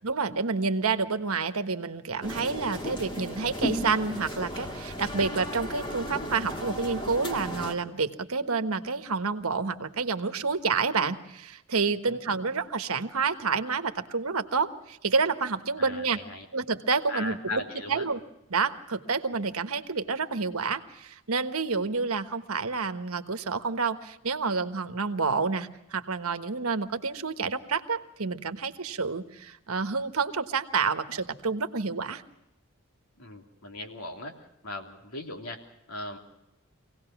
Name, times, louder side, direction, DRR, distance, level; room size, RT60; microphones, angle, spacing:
voice 1, 0.0-16.2 16.5-18.2 18.5-32.2, right 4 dB, 90° right, 9 dB, 1.3 m, -29 dB
sound 1, 2.2-7.8, equal, 20° left, 1.9 m, -35 dB
voice 2, 12.1-12.4 15.8-16.4 17.1-18.1 33.2-34.4 34.6-36.2, left 2 dB, 85° left, 3 dB, 3.2 m, -38 dB
25.5 x 18.0 x 6.0 m, 0.90 s
head